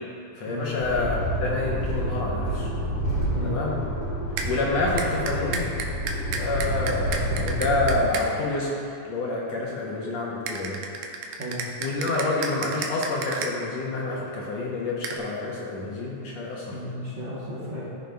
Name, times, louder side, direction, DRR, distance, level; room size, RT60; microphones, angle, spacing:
voice 1, 0.4-2.7 3.4-3.8 4.5-5.7 6.4-10.8 11.8-16.8, left 2 dB, 70° left, -4 dB, 1.9 m, -28 dB
sound 1, 0.8-8.0, equal, 50° left, 2.4 m, -28 dB
voice 2, 3.3-3.6 11.4-11.6 16.7-17.8, equal, 55° right, -9 dB, 1.5 m, -33 dB
sound 2, 4.4-4.5 5.0-8.3 10.5-13.5 15.0-15.2, right 5 dB, 80° right, 2.1 m, -32 dB
14.5 x 6.4 x 2.3 m, 2.7 s
omnidirectional pair, 3.6 m